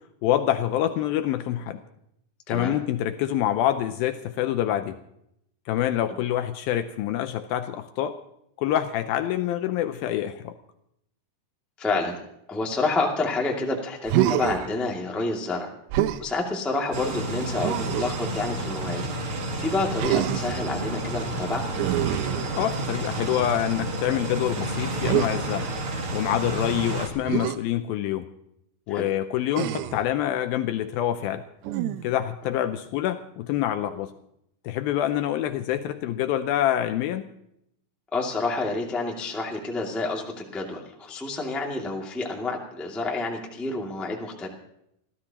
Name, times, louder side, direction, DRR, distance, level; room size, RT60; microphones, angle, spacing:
voice 1, 0.2-1.8 2.5-5.0 5.7-8.2 8.6-10.6 22.6-25.7 26.1-28.3 28.9-31.4 32.0-34.1 34.6-37.3, left 11 dB, 80° left, 9 dB, 2.2 m, -26 dB
voice 2, 11.8-12.2 12.5-15.7 16.2-19.1 19.6-21.6 28.9-29.1 38.1-44.5, left 3 dB, ahead, -1 dB, 0.7 m, -29 dB
Human voice, 14.1-14.7 15.9-16.3 17.6-18.3 20.0-20.6 21.7-23.0 25.0-25.3 27.3-27.6 29.5-30.1 31.6-32.2, right 13 dB, 90° right, 2.8 m, -26 dB
sound 1, 16.9-27.1, right 1 dB, 45° right, 1.8 m, -30 dB
27.5 x 13.5 x 2.9 m, 0.77 s
omnidirectional pair, 4.6 m